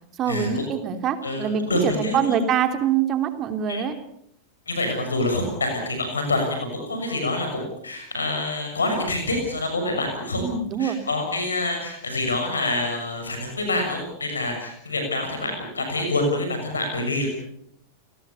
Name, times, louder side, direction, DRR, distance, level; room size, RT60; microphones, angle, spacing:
voice 1, 0.1-4.0 10.4-11.0, right 8 dB, 30° right, 8 dB, 3.1 m, -24 dB
voice 2, 1.2-2.4 3.7-3.8 4.7-6.4 6.7-10.4 10.8-17.3, left 2 dB, 75° left, 4 dB, 6.7 m, -26 dB
29.5 x 18.5 x 7.0 m, 0.72 s
figure-of-eight pair, 90°, 0 cm